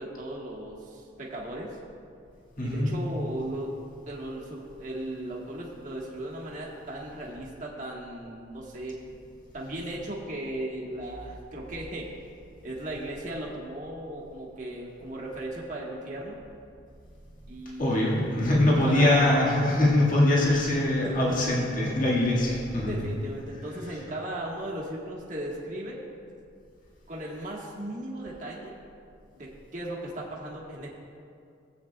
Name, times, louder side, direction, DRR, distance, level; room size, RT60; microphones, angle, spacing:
voice 1, 0.0-1.8 2.6-3.7 4.0-9.0 9.5-12.1 12.6-16.4 17.5-18.0 18.7-19.7 21.0-21.4 22.9-26.0 27.1-28.7 29.3-30.9, right 1 dB, 40° right, -4 dB, 1.6 m, -36 dB
voice 2, 2.6-3.0 17.8-22.9, left 1 dB, 45° left, -5 dB, 1.9 m, -23 dB
17.5 x 8.6 x 2.3 m, 2.4 s
head